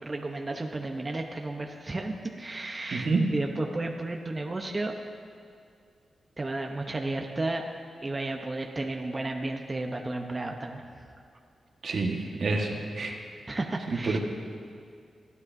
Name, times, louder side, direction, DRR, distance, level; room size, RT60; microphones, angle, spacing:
voice 1, 0.0-4.9 6.4-7.6 8.0-10.8 13.5-14.2, right 2 dB, 30° right, 2 dB, 0.8 m, -33 dB
voice 2, 2.9-3.2 11.8-13.2 14.0-14.2, right 3 dB, 65° right, 0 dB, 1.5 m, -28 dB
28.5 x 9.5 x 2.7 m, 2.3 s
cardioid pair, 65°, 0 cm